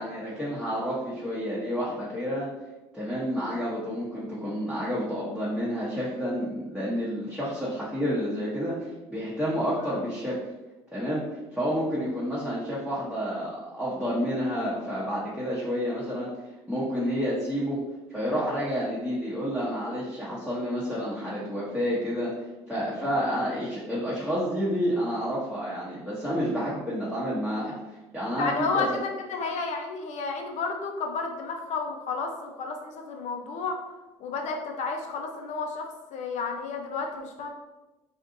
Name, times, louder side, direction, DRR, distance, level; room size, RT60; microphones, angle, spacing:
voice 1, 0.0-2.5 2.9-8.8 9.1-10.3 10.9-11.2 11.5-16.3 16.7-17.8 18.1-22.3 22.7-27.8 28.1-28.8, equal, 5° right, -9 dB, 0.8 m, -29 dB
voice 2, 28.3-33.8 34.2-37.5, left 4 dB, 60° left, 3 dB, 0.5 m, -32 dB
2.5 x 2.5 x 2.6 m, 1.1 s
supercardioid pair, 75°, 14 cm